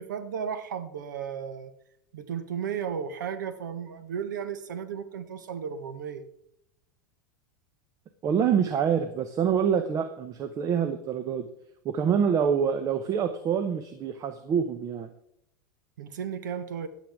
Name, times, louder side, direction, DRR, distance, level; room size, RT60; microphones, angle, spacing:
voice 1, 0.0-1.7 2.1-6.2 16.0-16.9, right 7 dB, 80° right, 11 dB, 1.1 m, -34 dB
voice 2, 8.2-11.5 11.8-15.1, right 7 dB, 35° right, 9 dB, 0.9 m, -26 dB
20.0 x 7.3 x 3.6 m, 0.76 s
hypercardioid pair, 100°, 10 cm